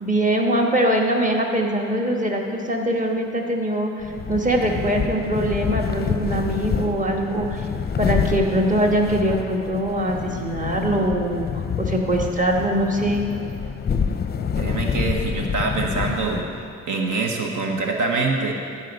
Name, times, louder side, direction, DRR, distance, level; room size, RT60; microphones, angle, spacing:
voice 1, 0.0-7.7 8.0-13.2, right 1 dB, 25° right, 1 dB, 1.4 m, -22 dB
sound 1, 4.0-16.7, left 6 dB, 30° left, 0.5 m, -27 dB
voice 2, 14.6-16.5 16.9-18.5, right 3 dB, 75° right, 1 dB, 1.1 m, -24 dB
14.0 x 5.5 x 5.3 m, 2.5 s
cardioid pair, 75°, 31 cm